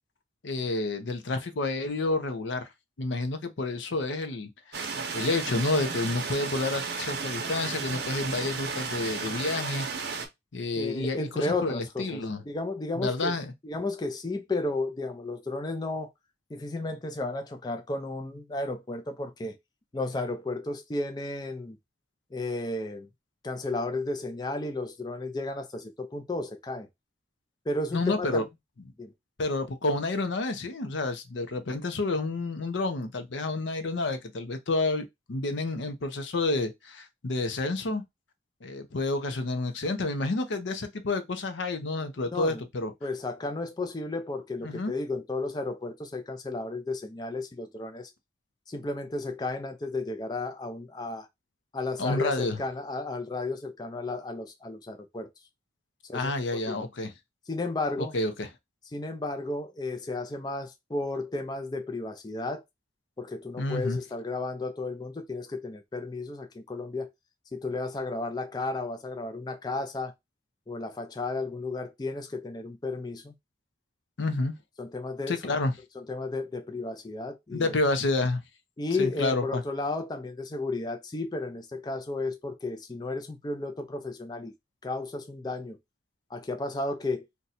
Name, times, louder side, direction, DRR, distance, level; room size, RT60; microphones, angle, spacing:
voice 1, 0.4-2.6 3.0-9.9 10.5-12.4 13.0-13.5 27.9-28.4 29.4-38.0 38.6-42.9 44.6-44.9 52.0-52.6 56.1-57.1 58.1-58.5 63.6-64.0 74.2-74.5 75.3-75.7 77.5-78.4 79.0-79.6, left 2 dB, 80° left, 0.6 m, -29 dB
sound 1, 4.7-10.3, right 5 dB, 60° right, 0.6 m, -33 dB
voice 2, 10.7-13.4 13.6-16.1 16.5-19.6 19.9-21.8 22.3-23.1 23.4-26.9 27.7-28.4 29.0-29.1 42.3-42.6 43.0-48.1 48.7-51.3 51.7-55.3 56.0-56.8 57.5-58.1 58.9-62.6 63.2-67.1 67.5-70.1 70.7-73.3 74.8-75.5 76.0-77.7 78.8-84.5 84.8-85.8 86.3-87.3, left 2 dB, 20° left, 0.4 m, -33 dB
2.6 x 2.2 x 4.1 m
head